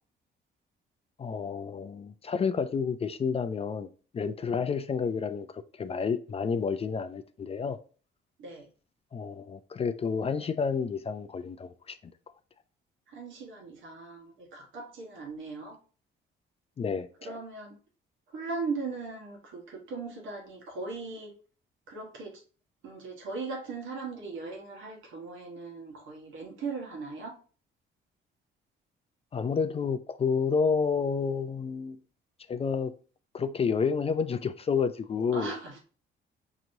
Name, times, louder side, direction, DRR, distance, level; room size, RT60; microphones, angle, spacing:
voice 1, 1.2-3.9 4.1-5.5 5.8-7.8 9.1-12.0 16.8-17.1 29.3-32.0 32.5-32.9 33.3-35.6, left 5 dB, 30° left, 0.3 m, -30 dB
voice 2, 13.1-15.8 17.2-17.7 18.3-21.3 21.9-22.4 22.8-27.3 35.1-35.8, right 4 dB, 80° right, 1.3 m, -38 dB
4.8 x 3.0 x 2.6 m
cardioid pair, 90°, 20 cm